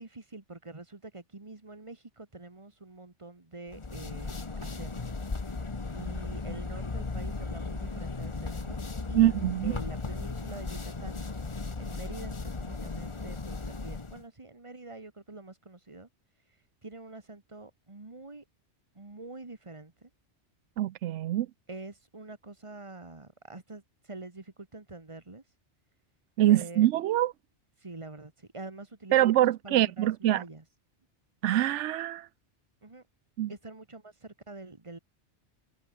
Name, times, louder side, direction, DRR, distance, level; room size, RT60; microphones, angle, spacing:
voice 1, 0.0-5.1 5.9-8.8 9.1-9.3 9.6-11.3 11.8-16.1 16.8-18.4 18.9-20.1 21.7-25.4 26.5-26.9 27.8-30.6 32.8-33.0 33.5-35.0, right 3 dB, 25° right, 2.0 m, -46 dB
sound 1, 3.7-14.2, left 3 dB, 25° left, 1.1 m, -36 dB
voice 2, 9.1-9.7 20.8-21.5 26.4-27.3 29.1-30.4 31.4-32.3 33.4-33.5, right 13 dB, 85° right, 0.9 m, -24 dB
omnidirectional pair, 1.2 m